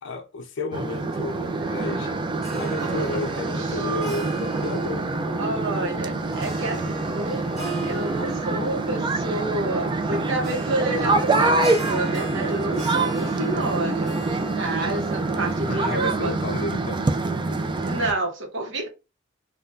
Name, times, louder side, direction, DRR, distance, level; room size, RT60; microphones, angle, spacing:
voice 1, 0.0-2.2 2.5-5.1 15.6-17.0, left 2 dB, 65° left, 0.5 m, -32 dB
sound 1, 0.7-18.1, right 3 dB, 25° right, 0.4 m, -26 dB
Harp, 2.3-16.1, right 4 dB, ahead, 1.7 m, -40 dB
voice 2, 5.4-14.2 14.6-16.3 17.5-18.9, right 2 dB, 65° right, 0.9 m, -29 dB
3.7 x 2.3 x 2.6 m
head